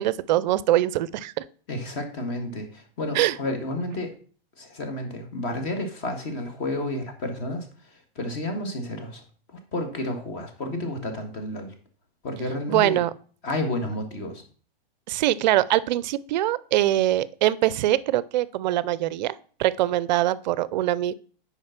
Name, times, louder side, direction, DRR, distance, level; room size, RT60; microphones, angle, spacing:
voice 1, 0.0-1.4 3.1-3.4 12.7-13.1 15.1-19.3 19.6-21.1, right 14 dB, 50° right, 19 dB, 0.4 m, -23 dB
voice 2, 1.7-4.1 4.6-9.2 9.5-11.7 12.2-13.0 13.4-14.4, left 1 dB, 35° left, 5 dB, 1.7 m, -31 dB
6.4 x 4.9 x 5.8 m, 0.43 s
supercardioid pair, 155°, 29 cm